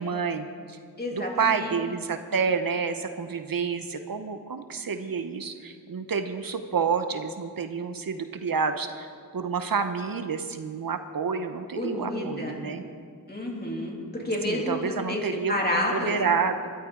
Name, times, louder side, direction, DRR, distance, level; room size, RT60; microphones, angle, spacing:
voice 1, 0.0-0.8 1.1-12.8 14.4-15.5 15.9-16.7, right 5 dB, 65° right, 8 dB, 0.8 m, -29 dB
voice 2, 1.0-1.8 11.8-12.6 13.3-15.2 15.5-16.2, left 1 dB, 25° left, -2 dB, 3.1 m, -29 dB
20.0 x 12.5 x 3.8 m, 2.1 s
wide cardioid pair, 65°, 37 cm